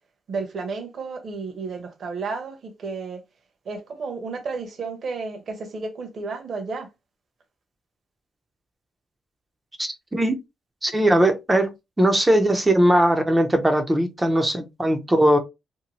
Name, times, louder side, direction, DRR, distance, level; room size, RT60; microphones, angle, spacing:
voice 1, 0.3-3.2 3.7-6.9, right 4 dB, 55° right, 0.9 m, -32 dB
voice 2, 9.8-10.4 10.8-11.7 12.0-15.4, right 1 dB, 15° right, 0.5 m, -19 dB
2.7 x 2.1 x 2.9 m
cardioid pair, 90°, 0 cm